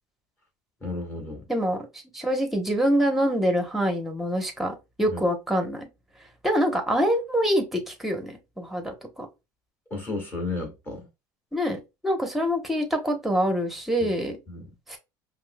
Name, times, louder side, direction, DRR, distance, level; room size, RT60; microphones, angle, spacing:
voice 1, 0.8-1.4 5.1-5.2 9.9-11.1 14.0-14.1 14.5-14.7, left 2 dB, 20° left, 1.7 m, -33 dB
voice 2, 1.5-5.9 6.4-9.3 11.5-14.4 14.9-15.0, equal, 5° right, 1.0 m, -25 dB
5.2 x 2.1 x 2.2 m
supercardioid pair, 115°, 9 cm